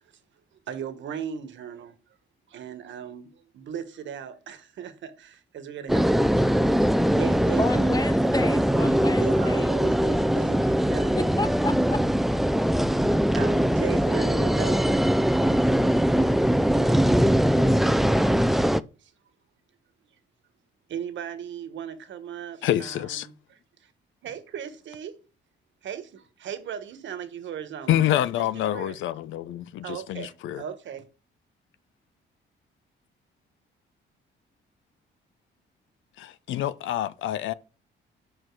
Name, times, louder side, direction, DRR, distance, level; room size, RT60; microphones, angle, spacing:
voice 1, 0.7-1.9 2.5-6.7 7.2-8.0 8.3-8.4 9.1-11.4 12.9-15.1 19.0-19.1 20.9-23.9 24.2-25.2 25.8-29.0 29.8-31.0, right 8 dB, 70° right, 1.2 m, -38 dB
sound 1, 5.9-18.8, equal, ahead, 0.3 m, -21 dB
voice 2, 7.6-9.7 11.1-12.0, left 2 dB, 20° left, 0.8 m, -31 dB
voice 3, 22.6-23.3 27.9-30.6 36.2-37.5, left 12 dB, 75° left, 0.5 m, -27 dB
5.9 x 5.0 x 4.7 m
cardioid pair, 90°, 20 cm